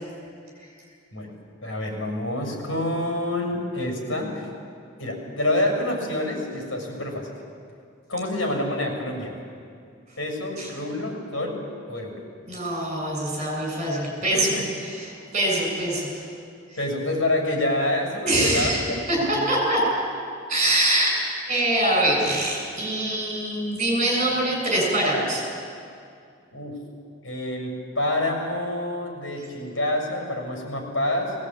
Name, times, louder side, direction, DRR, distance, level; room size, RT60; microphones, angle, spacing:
voice 1, 1.6-4.5 5.0-7.3 8.1-9.4 10.2-12.2 14.3-14.7 16.8-18.7 19.2-19.5 26.5-26.8 27.2-31.3, left 1 dB, 75° left, 1 dB, 6.6 m, -27 dB
voice 2, 12.5-14.5 14.9-16.1 16.7-16.8 18.2-19.8 20.5-21.1 21.5-25.4, right 1 dB, 35° right, -1 dB, 7.1 m, -24 dB
20.5 x 18.0 x 9.0 m, 2.3 s
head